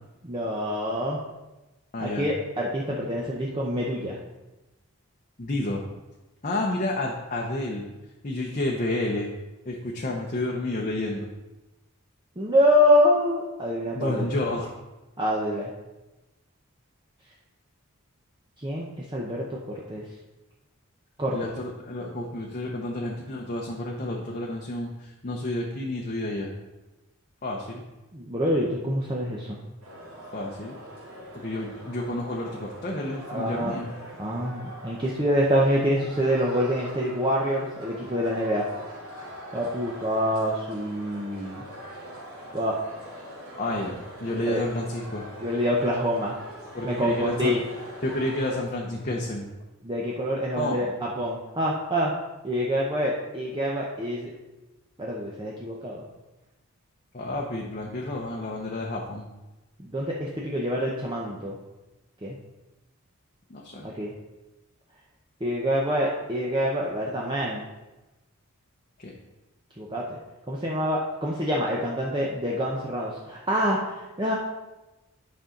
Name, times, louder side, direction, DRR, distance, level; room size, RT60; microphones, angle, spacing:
voice 1, 0.2-1.2 2.0-4.2 12.4-14.3 15.2-15.7 18.6-19.6 19.9-20.0 21.2-21.4 28.1-29.6 33.3-33.7 34.2-38.7 39.5-41.6 42.5-42.8 44.5-44.6 45.4-46.4 46.8-47.6 49.8-52.1 52.4-54.3 55.0-56.0 59.8-61.6 62.2-62.4 63.8-64.1 65.4-67.6 69.8-70.2 70.5-74.4, equal, 20° right, -4 dB, 0.8 m, -26 dB
voice 2, 1.9-2.3 5.4-5.8 6.4-7.8 8.2-9.3 9.7-11.3 13.9-14.7 21.3-26.5 27.4-27.8 30.3-30.8 31.3-33.9 43.6-45.2 46.7-47.6 48.0-49.5 50.6-50.9 57.1-59.3 63.5-63.9 69.0-69.1, left 1 dB, 35° left, -2 dB, 0.8 m, -30 dB
sound 1, 29.8-48.6, equal, 85° right, 2.6 m, -43 dB
9.8 x 5.5 x 3.8 m, 1.1 s
head